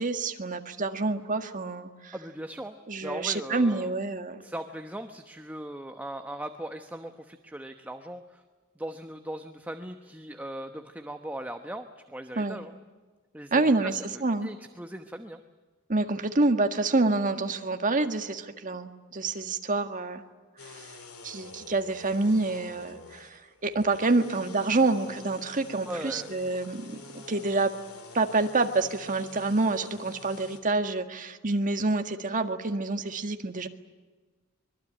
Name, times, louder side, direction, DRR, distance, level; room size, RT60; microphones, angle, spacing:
voice 1, 0.0-2.1 2.9-4.4 12.4-12.6 13.5-13.9 14.2-14.5 15.9-20.2 20.6-21.0 21.2-27.7 28.1-33.7, right 3 dB, 40° right, 6 dB, 1.7 m, -27 dB
voice 2, 2.1-3.9 4.4-8.4 8.8-12.7 13.3-14.0 14.4-15.4 25.9-26.6, right 1 dB, 10° right, 6 dB, 1.0 m, -39 dB
sound 1, 20.6-30.6, left 3 dB, 85° left, 3.2 m, -47 dB
24.5 x 22.5 x 8.9 m, 1.4 s
head